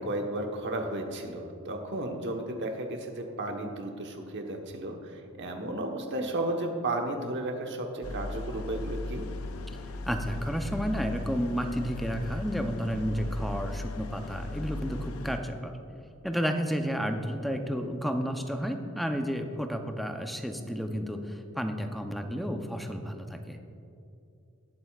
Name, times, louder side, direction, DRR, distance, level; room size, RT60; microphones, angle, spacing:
voice 1, 0.0-9.3, right 1 dB, 55° right, 3 dB, 1.1 m, -33 dB
sound 1, 8.0-15.4, left 2 dB, 75° left, 0.6 m, -37 dB
voice 2, 10.1-15.8 16.2-23.6, equal, ahead, 5 dB, 0.6 m, -31 dB
19.0 x 7.9 x 2.4 m, 2.6 s
head